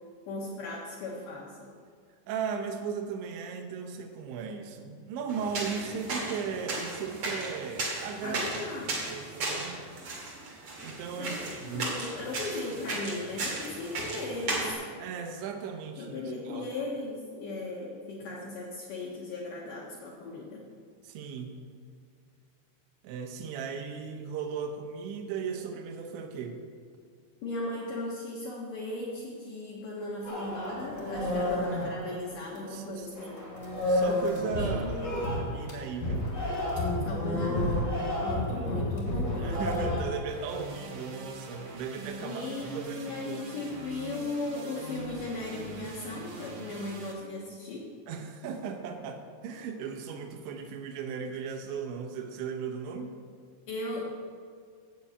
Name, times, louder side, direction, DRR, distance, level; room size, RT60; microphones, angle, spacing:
voice 1, 0.3-1.7 8.2-9.0 11.2-14.8 16.0-20.6 27.4-33.4 34.6-34.9 37.0-37.9 38.2-39.6 42.2-47.8 53.7-54.0, left 2 dB, 60° left, -4 dB, 2.4 m, -37 dB
voice 2, 2.3-8.4 8.8-9.9 10.8-12.0 15.0-16.2 16.5-16.7 21.0-21.6 23.0-26.6 31.2-31.5 32.6-33.1 33.9-35.1 35.5-36.3 38.6-38.7 39.4-43.4 48.1-53.2, right 6 dB, 85° right, 5 dB, 3.3 m, -37 dB
sound 1, 5.3-14.7, right 2 dB, 45° right, 2.5 m, -36 dB
sound 2, 30.2-32.8 33.1-40.0, left 1 dB, 25° left, 2.2 m, -30 dB
sound 3, 40.3-47.1, right 2 dB, 60° right, 3.2 m, -43 dB
8.9 x 7.3 x 8.3 m, 2.1 s
omnidirectional pair, 5.2 m